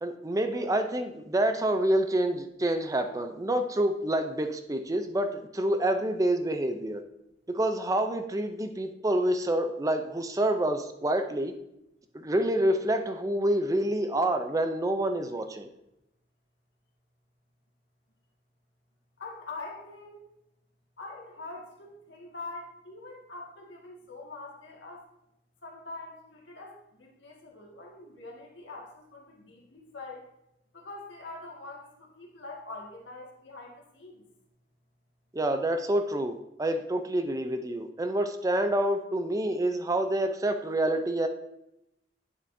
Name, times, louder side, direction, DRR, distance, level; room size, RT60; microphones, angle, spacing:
voice 1, 0.0-7.0 7.5-11.5 12.1-15.7 35.3-41.3, right 1 dB, 20° right, 7 dB, 0.5 m, -27 dB
voice 2, 19.2-20.3 21.0-25.1 25.6-30.2 30.7-34.2, left 3 dB, 85° left, -1 dB, 1.9 m, -44 dB
9.1 x 6.7 x 2.7 m, 0.83 s
head